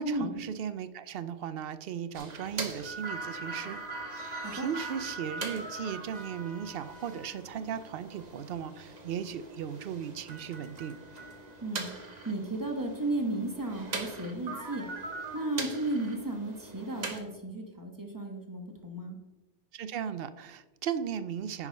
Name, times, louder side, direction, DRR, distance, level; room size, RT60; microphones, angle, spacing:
voice 1, 0.0-3.8 4.1-11.0 19.7-21.7, right 8 dB, 60° right, 13 dB, 0.7 m, -37 dB
sound 1, 2.1-17.2, right 3 dB, 40° right, 1.1 m, -41 dB
voice 2, 12.2-14.9 15.3-19.2, right 2 dB, 15° right, 3 dB, 1.2 m, -34 dB
9.8 x 4.8 x 5.3 m, 1.1 s
omnidirectional pair, 1.2 m